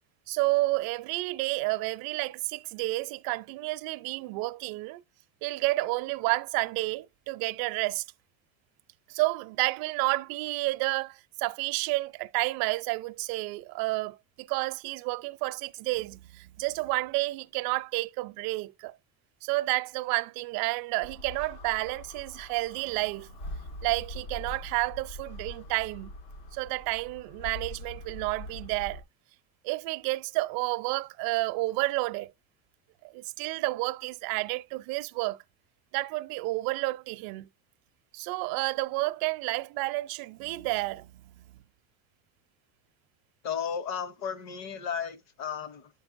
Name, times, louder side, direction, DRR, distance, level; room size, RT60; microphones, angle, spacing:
voice 1, 0.3-5.0 5.4-8.0 9.1-18.9 19.4-23.4 23.8-26.1 26.5-29.0 29.6-32.3 33.1-35.4 35.9-37.5 38.1-41.6, right 22 dB, 60° right, 0.5 m, -30 dB
sound 1, 21.0-29.0, left 1 dB, 75° left, 1.5 m, -43 dB
voice 2, 43.4-45.9, left 7 dB, 40° left, 0.8 m, -34 dB
12.0 x 5.3 x 2.5 m
cardioid pair, 165°, 41 cm